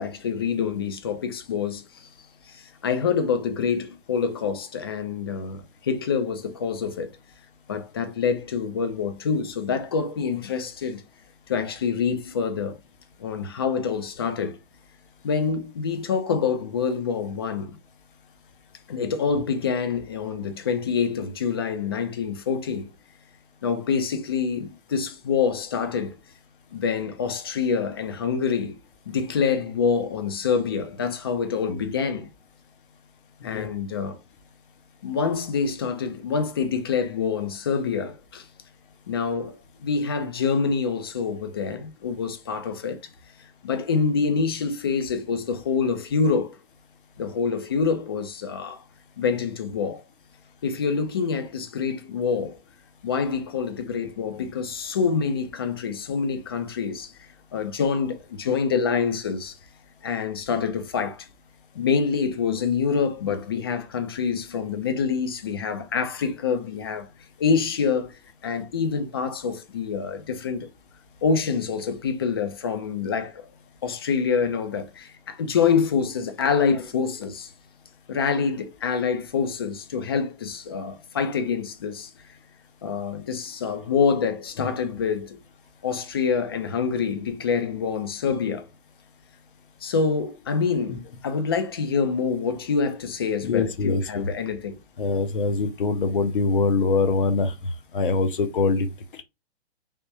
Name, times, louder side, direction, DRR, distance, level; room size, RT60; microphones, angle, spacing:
voice 1, 0.0-1.8 2.5-7.1 7.7-11.0 11.5-12.8 13.2-14.6 15.2-17.8 18.9-22.9 23.6-26.1 26.7-28.8 29.1-32.3 33.4-34.2 35.0-38.4 39.1-43.0 43.6-46.6 47.2-48.8 49.2-50.0 50.6-52.6 53.0-57.1 57.5-59.6 60.0-61.3 61.7-67.1 67.4-68.1 68.4-70.7 71.2-73.5 73.8-77.5 78.1-82.1 82.8-85.4 85.8-88.7 89.8-94.8, left 5 dB, 25° left, 0.3 m, -26 dB
voice 2, 93.4-94.3 95.0-97.5 97.9-98.9, left 4 dB, 55° left, 0.7 m, -23 dB
3.5 x 2.9 x 2.7 m
figure-of-eight pair, 120°, 32 cm